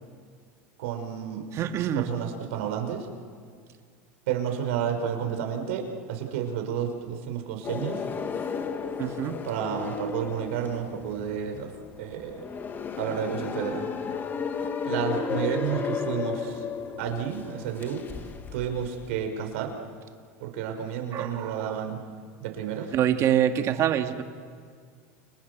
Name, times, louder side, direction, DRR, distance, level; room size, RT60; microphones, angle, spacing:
voice 1, 0.8-1.5 1.9-3.1 4.3-8.0 9.4-11.7 12.0-12.4 13.0-13.9 14.9-16.6 17.0-18.0 18.5-19.7 20.4-22.0 22.4-22.9, right 8 dB, 75° right, 5 dB, 5.1 m, -31 dB
voice 2, 1.5-2.1 9.0-9.4 21.1-21.8 22.9-24.2, right 10 dB, 40° right, 6 dB, 2.1 m, -25 dB
sound 1, 7.6-19.3, left 6 dB, 30° left, 2.0 m, -34 dB
29.5 x 29.5 x 6.8 m, 2.1 s
supercardioid pair, 125°, 7 cm